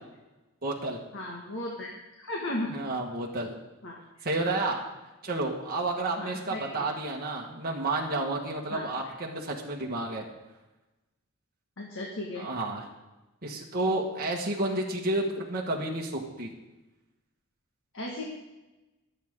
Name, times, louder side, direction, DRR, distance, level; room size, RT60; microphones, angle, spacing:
voice 1, 0.6-1.0 2.7-3.6 4.2-4.8 5.2-10.3 12.3-12.8 13.4-16.5, right 2 dB, 45° right, -1 dB, 1.7 m, -31 dB
voice 2, 1.1-1.9 2.2-2.7 3.8-3.9 6.2-6.8 8.7-8.8 11.8-12.5 17.9-18.3, left 1 dB, 60° left, -1 dB, 1.8 m, -35 dB
23.0 x 8.1 x 3.8 m, 1.1 s
head